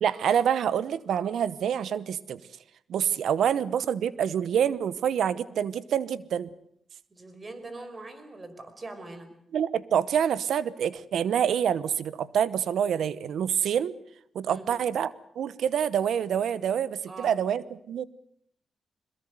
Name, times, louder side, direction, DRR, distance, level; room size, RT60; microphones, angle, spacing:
voice 1, 0.0-2.4 2.9-6.5 9.5-13.9 14.3-18.0, right 8 dB, 80° right, 18 dB, 0.9 m, -27 dB
voice 2, 7.1-9.3 14.5-14.7 17.1-17.4, right 2 dB, 35° right, 9 dB, 5.2 m, -42 dB
22.0 x 21.5 x 8.0 m, 0.71 s
cardioid pair, 65°, 0 cm